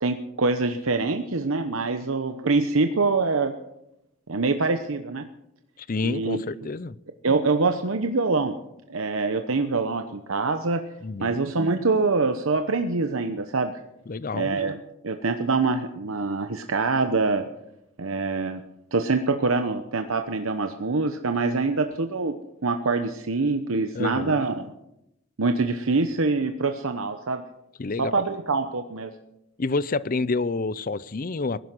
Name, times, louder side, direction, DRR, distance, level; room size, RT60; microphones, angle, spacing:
voice 1, 0.0-3.5 4.3-5.2 6.0-6.4 7.2-8.5 8.9-10.8 11.2-13.7 14.3-14.8 15.0-17.4 18.0-18.6 18.9-22.3 22.6-24.7 25.4-27.4 28.0-29.1, right 3 dB, 75° right, 7 dB, 0.9 m, -25 dB
voice 2, 5.8-7.0 11.0-11.4 14.1-14.5 23.9-24.4 27.8-28.2 29.6-31.6, left 3 dB, 40° left, 19 dB, 0.5 m, -28 dB
20.5 x 11.5 x 6.1 m, 0.84 s
head